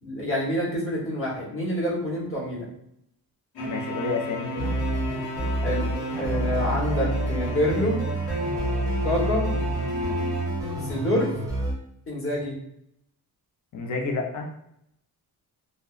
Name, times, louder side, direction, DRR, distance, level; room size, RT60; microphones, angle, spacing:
voice 1, 0.0-2.6 5.6-5.9 6.2-8.0 9.0-9.5 10.8-11.3 12.1-12.6, left 1 dB, 35° left, -5 dB, 1.1 m, -27 dB
sound 1, 3.6-11.3, left 1 dB, 90° left, 0.8 m, -33 dB
voice 2, 3.6-4.8 9.1-9.2 13.7-14.5, left 3 dB, 50° left, 1 dB, 0.6 m, -30 dB
sound 2, 4.6-11.7, right 2 dB, 10° right, 0.6 m, -28 dB
2.6 x 2.1 x 2.3 m, 0.75 s
wide cardioid pair, 135°, 38 cm